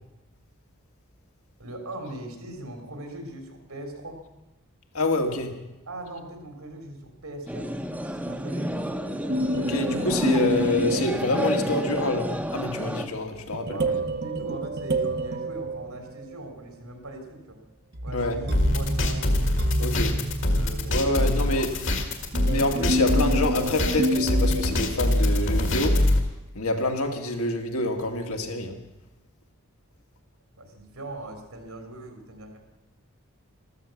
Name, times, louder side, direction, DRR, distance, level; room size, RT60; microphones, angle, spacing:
voice 1, 1.6-4.2 5.9-9.4 13.7-17.6 18.0-19.4 20.5-22.2 30.6-32.6, right 1 dB, 85° right, 5 dB, 3.5 m, -40 dB
voice 2, 4.9-5.5 9.5-13.8 18.1-18.4 19.8-20.2 20.9-21.7 22.5-26.0 26.6-28.7, left 2 dB, 80° left, 3 dB, 2.1 m, -26 dB
sound 1, 7.5-13.1, equal, 5° right, 0.8 m, -30 dB
sound 2, 9.3-11.9 13.5-16.5 17.9-25.3, equal, 45° right, 0.8 m, -29 dB
sound 3, 18.5-26.2, left 1 dB, 55° left, 1.9 m, -24 dB
13.5 x 13.5 x 7.2 m, 1.0 s
head